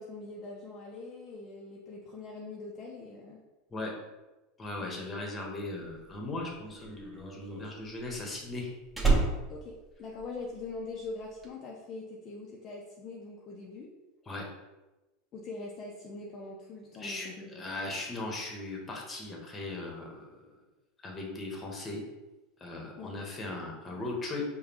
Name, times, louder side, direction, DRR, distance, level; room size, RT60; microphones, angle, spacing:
voice 1, 0.0-3.4 4.8-4.9 9.5-13.9 15.3-17.7 23.0-23.1, left 3 dB, 40° left, -2 dB, 0.6 m, -43 dB
voice 2, 4.6-8.7 14.3-14.4 17.0-20.3 21.0-22.0 22.6-24.4, left 2 dB, 20° left, -1 dB, 1.1 m, -38 dB
Slam, 6.0-10.8 11.0-11.5, right 3 dB, 5° right, 1.0 m, -31 dB
5.0 x 2.3 x 2.9 m, 1.1 s
hypercardioid pair, 100°, 0 cm